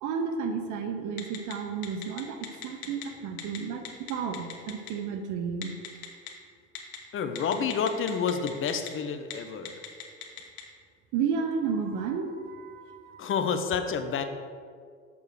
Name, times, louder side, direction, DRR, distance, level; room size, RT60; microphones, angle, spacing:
voice 1, 0.0-5.7 11.1-13.3, right 6 dB, 50° right, 6 dB, 0.8 m, -32 dB
Telephone, 1.2-1.5 1.8-3.0 3.4-3.6 3.8-4.9 5.6-6.3 6.8-7.0 7.4-8.9 9.2-9.3 9.7-10.6, left 13 dB, 50° left, 1.5 m, -38 dB
voice 2, 7.1-9.8 13.2-14.2, left 6 dB, 30° left, 8 dB, 0.8 m, -29 dB
6.9 x 6.6 x 4.7 m, 2.1 s
hypercardioid pair, 80°, 40 cm